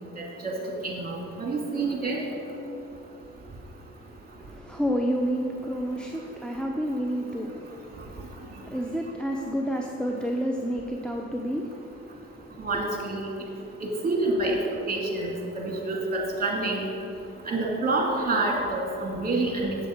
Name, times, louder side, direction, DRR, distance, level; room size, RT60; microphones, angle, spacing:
voice 1, 0.8-2.2 12.6-13.3 14.0-14.6 14.9-16.9 17.5-19.8, right 2 dB, 30° right, -1 dB, 2.3 m, -27 dB
voice 2, 4.5-7.7 8.6-11.7, equal, 5° left, 0 dB, 0.6 m, -29 dB
7.8 x 7.5 x 5.1 m, 2.8 s
cardioid pair, 90°, 30 cm